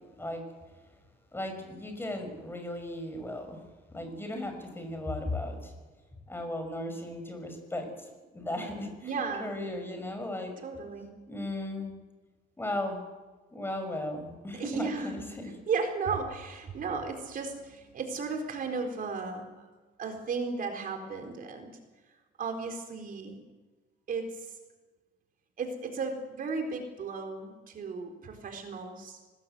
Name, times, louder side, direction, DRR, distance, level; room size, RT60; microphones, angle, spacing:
voice 1, 1.3-3.6 3.9-5.7 6.3-8.1 8.3-10.5 11.3-12.0 12.6-13.0 13.5-15.5, left 1 dB, 10° left, 5 dB, 6.1 m, -36 dB
voice 2, 9.0-9.6 10.6-11.1 14.5-15.1 15.7-19.6 20.0-21.7 22.4-23.4 24.1-24.5 25.6-29.2, right 4 dB, 50° right, 4 dB, 4.2 m, -35 dB
26.0 x 20.0 x 8.0 m, 1.3 s
cardioid pair, 135°, 19 cm